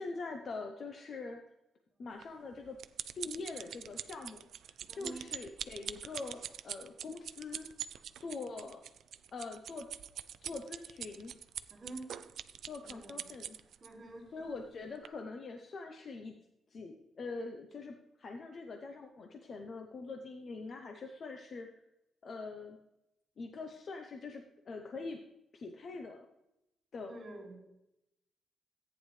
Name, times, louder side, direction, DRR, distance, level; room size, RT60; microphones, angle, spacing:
voice 1, 0.0-1.4 2.0-2.8 3.2-4.5 4.9-7.7 8.2-8.8 9.3-9.9 10.4-11.3 12.7-13.6 14.3-16.4 16.7-21.7 22.2-22.8 23.4-25.2 25.5-26.3 26.9-27.2, left 3 dB, 40° left, 4 dB, 0.7 m, -43 dB
sound 1, 2.2-13.9 14.5-14.7 15.1-15.2, right 9 dB, 65° right, 0.4 m, -44 dB
voice 2, 4.9-5.3 11.7-12.2 12.8-13.3 13.8-14.4 27.1-27.6, right 2 dB, 30° right, -1 dB, 2.1 m, -48 dB
14.0 x 9.4 x 3.2 m, 0.88 s
wide cardioid pair, 170°, 0 cm